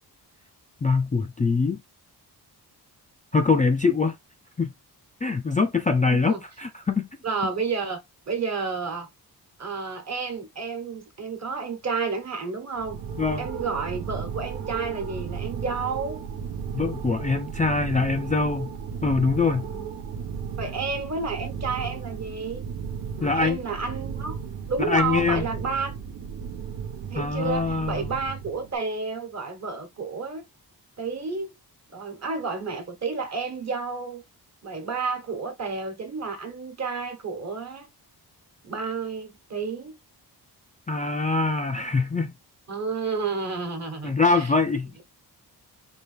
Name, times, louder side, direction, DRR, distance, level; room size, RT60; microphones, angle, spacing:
voice 1, 0.8-1.8 3.3-4.1 4.6-4.7 5.2-7.1 13.2-13.5 16.7-18.7 19.0-19.7 23.2-23.6 24.9-25.4 27.1-28.1 40.9-42.3 44.0-44.9, left 4 dB, 20° left, 0.3 m, -23 dB
voice 2, 6.1-6.4 7.2-8.0 8.3-9.1 9.6-13.0 13.4-16.2 19.6-19.9 20.6-22.6 23.2-24.3 24.7-26.0 27.1-30.4 31.0-31.5 31.9-34.2 34.6-37.9 38.6-40.0 42.7-44.5, right 4 dB, 40° right, 1.3 m, -31 dB
sound 1, 12.8-28.8, right 7 dB, 80° right, 1.1 m, -35 dB
4.4 x 2.8 x 3.3 m
wide cardioid pair, 145°, 40 cm